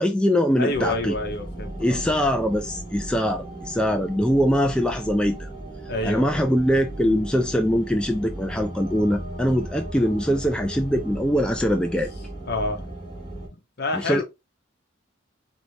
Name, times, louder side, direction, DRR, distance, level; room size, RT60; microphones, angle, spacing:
voice 1, 0.0-1.1 1.8-5.5 6.0-12.1 13.9-14.2, equal, 5° left, 0.3 m, -22 dB
voice 2, 0.6-2.0 5.9-6.4 12.5-12.9 13.8-14.2, left 2 dB, 55° left, 1.0 m, -28 dB
sound 1, 0.7-13.5, right 1 dB, 20° left, 2.4 m, -36 dB
4.2 x 2.7 x 3.2 m
head